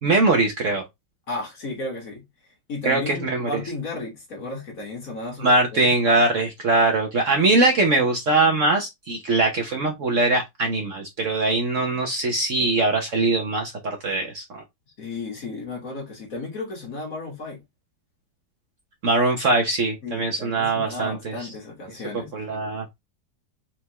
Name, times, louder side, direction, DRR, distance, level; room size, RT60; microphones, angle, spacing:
voice 1, 0.0-0.8 2.8-3.5 5.4-14.6 19.0-21.5 22.3-23.0, right 2 dB, 50° right, 1.0 m, -22 dB
voice 2, 1.3-2.2 2.7-5.9 15.0-17.6 20.0-22.3, left 3 dB, 50° left, 1.9 m, -34 dB
4.4 x 3.4 x 2.9 m
omnidirectional pair, 2.0 m